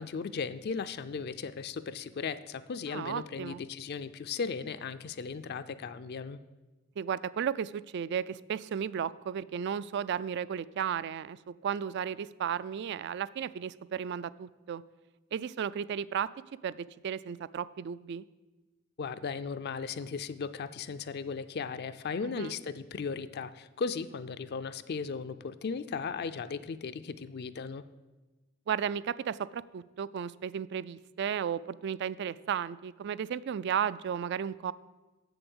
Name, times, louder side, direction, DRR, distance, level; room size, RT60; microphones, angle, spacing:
voice 1, 0.0-6.4 19.0-27.8, left 5 dB, 50° left, 11 dB, 0.4 m, -36 dB
voice 2, 2.9-3.6 7.0-14.8 15.3-16.3 16.6-18.2 22.2-22.5 28.7-34.7, right 8 dB, 55° right, 17 dB, 0.3 m, -34 dB
7.9 x 7.0 x 7.9 m, 1.2 s
head